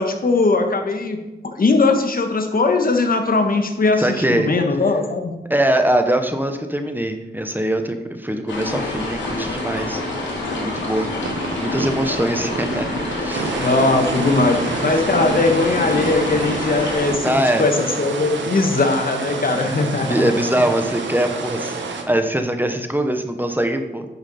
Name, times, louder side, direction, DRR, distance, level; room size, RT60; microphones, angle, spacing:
voice 1, 0.0-5.3 13.6-20.2, left 3 dB, 50° left, 5 dB, 1.5 m, -19 dB
voice 2, 4.0-4.5 5.5-10.0 10.6-11.1 11.6-13.5 17.2-17.6 20.0-24.1, right 1 dB, 10° right, 6 dB, 1.1 m, -22 dB
sound 1, 8.5-17.1, left 2 dB, 90° left, 2.5 m, -27 dB
sound 2, 11.2-17.2, right 4 dB, 70° right, 1.0 m, -31 dB
sound 3, 13.3-22.0, right 4 dB, 85° right, 1.2 m, -29 dB
10.5 x 7.1 x 4.3 m, 1.0 s
cardioid pair, 65°, 19 cm